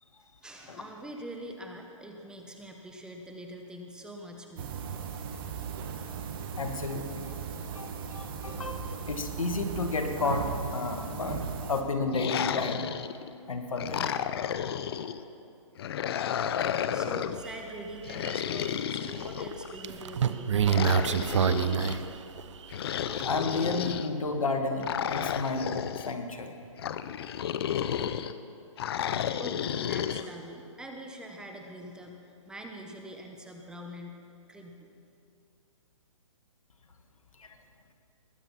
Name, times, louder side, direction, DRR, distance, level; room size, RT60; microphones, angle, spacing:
voice 1, 0.4-4.7 16.2-20.9 29.4-34.2 34.5-34.9, right 1 dB, 5° right, 2 dB, 0.9 m, -44 dB
sound 1, 4.6-11.8, right 6 dB, 40° right, 1.4 m, -37 dB
voice 2, 6.6-7.4 7.7-8.8 9.1-11.4 11.7-12.9 13.5-14.0 23.2-26.5 37.4-37.5, left 3 dB, 80° left, 5 dB, 1.8 m, -32 dB
sound 2, 12.1-13.3 13.8-15.2 15.8-17.4 18.0-19.8 20.7-22.0 22.7-24.1 24.8-26.1 26.8-28.3 28.8-30.2, left 9 dB, 50° left, 0.6 m, -32 dB
sound 3, 17.4-17.6 18.0-18.7 19.5-22.7 23.2-23.3, right 7 dB, 60° right, 0.8 m, -26 dB
20.0 x 9.1 x 5.9 m, 2.6 s
hypercardioid pair, 145°, 17 cm